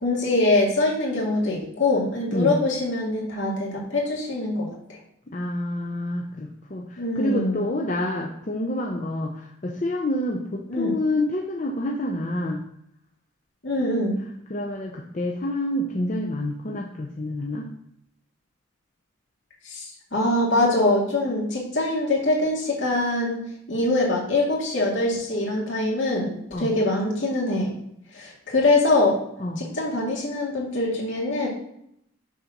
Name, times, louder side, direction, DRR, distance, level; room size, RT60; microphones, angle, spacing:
voice 1, 0.0-4.7 7.0-7.6 10.7-10.9 13.6-14.2 19.6-23.4 23.7-27.7 28.1-29.2 29.6-31.5, left 2 dB, 65° left, -2 dB, 2.2 m, -23 dB
voice 2, 5.3-12.6 14.5-17.7 26.5-26.7 29.4-29.7, left 1 dB, 35° left, 1 dB, 0.6 m, -28 dB
6.3 x 4.0 x 5.8 m, 0.73 s
head